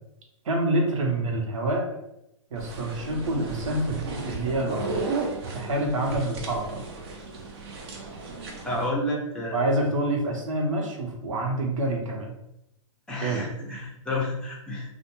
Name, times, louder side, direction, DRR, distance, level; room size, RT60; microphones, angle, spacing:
voice 1, 0.4-1.8 2.5-5.0 5.5-6.8 9.5-12.3 13.2-13.5, right 1 dB, 75° right, 0 dB, 0.9 m, -27 dB
sound 1, 2.6-8.9, right 3 dB, 50° right, 0.6 m, -34 dB
voice 2, 8.6-9.7 13.1-14.9, left 1 dB, 5° left, -4 dB, 0.5 m, -30 dB
2.5 x 2.2 x 3.0 m, 0.83 s
hypercardioid pair, 145°, 17 cm